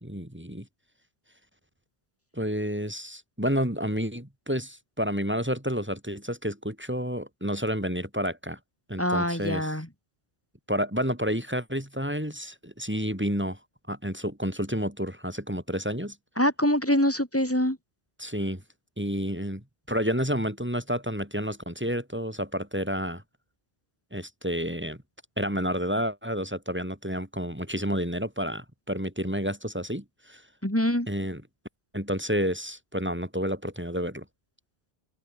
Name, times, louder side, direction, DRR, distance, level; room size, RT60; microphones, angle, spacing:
voice 1, 0.0-0.7 2.3-8.6 8.9-9.7 10.7-13.6 13.9-16.2 18.2-18.6 19.0-23.2 24.1-25.0 25.4-30.4 31.1-31.4 31.9-34.2, equal, 10° right, 3.2 m, -30 dB
voice 2, 9.0-9.9 16.4-17.8 30.6-31.1, equal, 15° left, 3.1 m, -24 dB
omnidirectional pair, 1.1 m